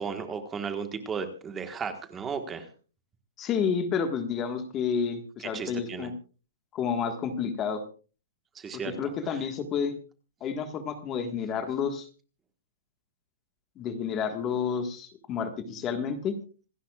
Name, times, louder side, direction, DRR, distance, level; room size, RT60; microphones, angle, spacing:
voice 1, 0.0-2.7 5.5-6.1 8.5-8.9, right 6 dB, 10° right, 7 dB, 1.4 m, -34 dB
voice 2, 3.4-6.1 6.7-7.8 8.8-10.0 10.4-12.1 13.8-16.3, left 6 dB, 20° left, 7 dB, 1.5 m, -30 dB
26.5 x 11.5 x 2.4 m, 0.36 s
hypercardioid pair, 165°, 0 cm